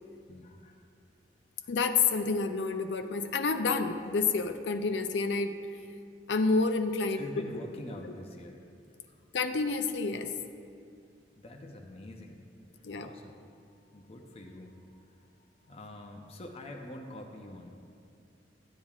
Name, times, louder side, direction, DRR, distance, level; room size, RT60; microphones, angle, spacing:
voice 1, 0.3-0.8 1.6-1.8 7.1-9.3 11.4-12.4 12.7-17.7, left 1 dB, 35° left, 2 dB, 0.6 m, -46 dB
voice 2, 1.7-5.6 6.3-7.2 9.3-10.3 12.8-13.1, left 4 dB, 90° left, 7 dB, 0.5 m, -29 dB
13.5 x 8.8 x 2.4 m, 2.4 s
head